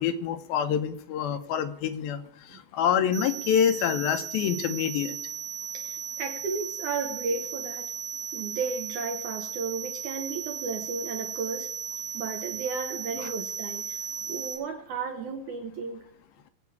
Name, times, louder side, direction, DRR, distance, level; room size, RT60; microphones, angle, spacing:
voice 1, 0.0-2.2 2.5-5.2 13.2-13.3, left 8 dB, 85° left, 9 dB, 2.7 m, -26 dB
sound 1, 3.1-14.5, right 7 dB, 55° right, 3.2 m, -36 dB
voice 2, 5.7-7.9 8.3-11.7 12.1-16.1, right 4 dB, 70° right, 5 dB, 2.0 m, -34 dB
21.5 x 8.4 x 4.7 m, 0.68 s
omnidirectional pair, 4.2 m